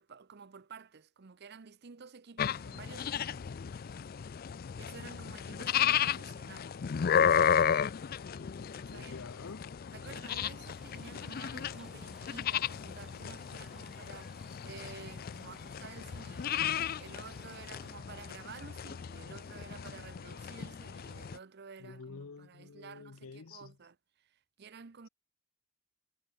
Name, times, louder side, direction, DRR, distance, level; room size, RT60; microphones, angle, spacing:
voice 1, 0.0-3.5 4.7-6.9 8.7-9.2 9.9-25.1, right 5 dB, 50° right, 0.7 m, -51 dB
sound 1, 2.4-21.4, left 8 dB, 45° left, 0.4 m, -34 dB
voice 2, 8.9-9.6 21.8-23.7, left 4 dB, 80° left, 0.7 m, -48 dB
sound 2, 10.6-18.0, equal, 5° right, 2.3 m, -59 dB
head